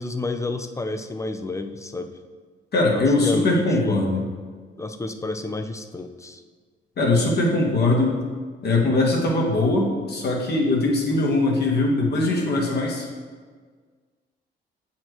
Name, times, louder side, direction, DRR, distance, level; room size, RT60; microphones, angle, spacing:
voice 1, 0.0-2.1 2.9-4.1 4.8-6.4, left 2 dB, 15° left, 8 dB, 0.4 m, -30 dB
voice 2, 2.7-4.3 7.0-8.2 8.6-13.1, left 2 dB, 55° left, -1 dB, 1.3 m, -21 dB
7.7 x 4.4 x 3.0 m, 1.6 s
cardioid pair, 90°, 20 cm